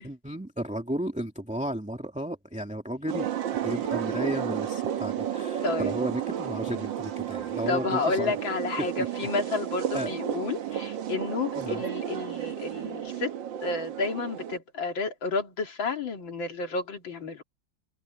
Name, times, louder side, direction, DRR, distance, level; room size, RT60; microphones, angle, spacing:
voice 1, 0.0-3.3 3.6-8.4 9.9-10.1 11.6-11.8, right 1 dB, 5° right, 2.4 m, -33 dB
sound 1, 3.1-14.6, right 10 dB, 75° right, 1.9 m, -32 dB
voice 2, 5.6-6.0 7.7-13.3 13.6-17.4, left 4 dB, 85° left, 3.2 m, -31 dB
omnidirectional pair, 2.0 m